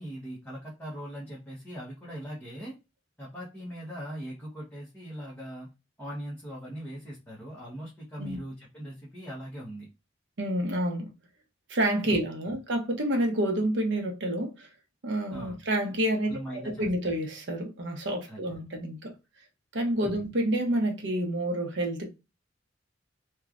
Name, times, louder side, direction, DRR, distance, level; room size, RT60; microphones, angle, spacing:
voice 1, 0.0-2.8 3.2-5.7 6.0-9.9 12.0-12.2 12.5-12.6 15.3-15.6 16.3-16.9 18.3-18.8 20.0-20.2, equal, 10° left, 0.9 m, -40 dB
voice 2, 10.4-11.1 11.7-14.7 15.0-19.1 19.7-22.1, right 1 dB, 65° right, 0.8 m, -29 dB
3.0 x 2.3 x 2.4 m
head